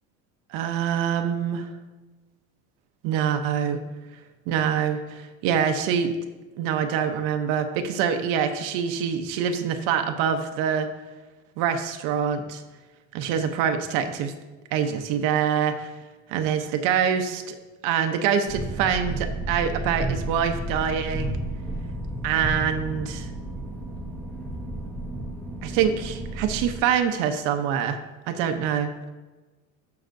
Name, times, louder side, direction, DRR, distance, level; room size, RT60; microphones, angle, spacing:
voice 1, 0.5-1.7 3.0-3.8 4.5-6.1 6.6-10.9 11.6-12.6 13.1-14.3 14.7-15.9 16.3-17.5 17.8-21.4 22.2-23.3 25.6-28.0 28.3-28.9, right 8 dB, 70° right, 7 dB, 0.8 m, -25 dB
sound 1, 18.5-26.8, right 1 dB, 5° left, 1.4 m, -32 dB
14.0 x 5.8 x 2.6 m, 1.2 s
cardioid pair, 145°, 34 cm